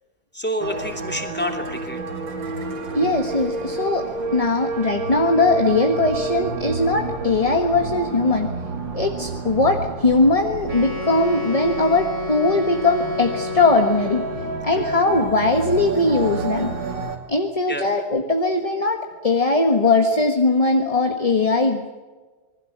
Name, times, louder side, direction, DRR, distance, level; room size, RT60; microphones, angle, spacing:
voice 1, 0.3-2.0 14.7-14.9 17.7-17.9, equal, 5° left, 3 dB, 2.9 m, -28 dB
sound 1, 0.6-17.2, right 3 dB, 60° right, 3.3 m, -30 dB
voice 2, 2.9-8.5 8.9-14.3 14.6-16.7 17.3-22.0, left 2 dB, 20° left, 4 dB, 1.3 m, -20 dB
Wind instrument woodwind instrument, 10.6-14.7, left 2 dB, 15° right, 3.0 m, -30 dB
27.0 x 20.5 x 7.4 m, 1.3 s
omnidirectional pair, 2.2 m